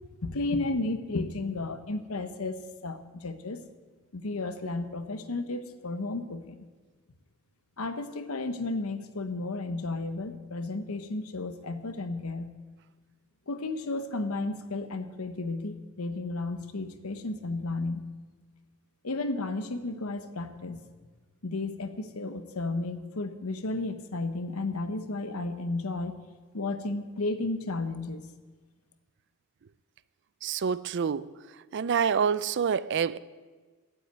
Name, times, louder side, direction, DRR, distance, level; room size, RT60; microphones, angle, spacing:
voice 1, 0.2-2.5 2.8-3.6 4.1-6.6 7.8-12.5 13.5-18.0 19.0-20.8 21.4-26.1 26.5-28.3, left 2 dB, 85° left, 10 dB, 1.0 m, -33 dB
voice 2, 30.4-31.3 31.7-33.2, right 7 dB, 55° right, 17 dB, 0.4 m, -27 dB
12.5 x 7.3 x 9.1 m, 1.4 s
head